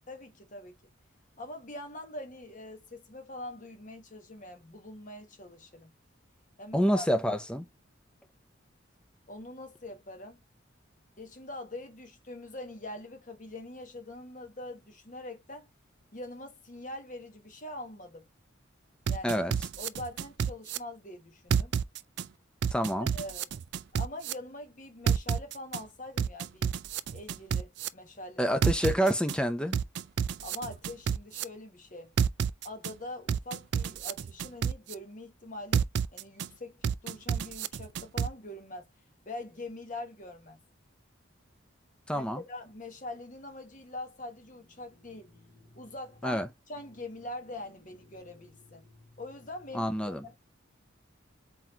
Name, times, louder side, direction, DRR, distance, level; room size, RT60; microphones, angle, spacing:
voice 1, 0.1-0.8 1.4-5.9 6.6-7.1 9.3-10.4 11.2-15.7 16.1-18.2 19.1-19.4 19.8-21.7 23.1-23.5 23.9-26.8 27.1-28.4 30.4-32.1 32.6-38.9 39.2-40.6 42.1-46.4 46.7-50.4, left 2 dB, 40° left, 1.3 m, -43 dB
voice 2, 6.7-7.7 19.2-19.5 22.7-23.1 28.4-29.8 42.1-42.4 46.2-46.5 49.7-50.3, equal, 5° left, 0.5 m, -27 dB
sound 1, 19.1-20.8 21.5-22.2 22.6-24.3 25.1-25.8 26.2-27.9 28.6-29.4 29.7-31.4 32.2-32.9 33.3-34.9 35.7-36.5 36.8-38.3, right 7 dB, 55° right, 0.3 m, -29 dB
4.4 x 4.1 x 2.8 m
head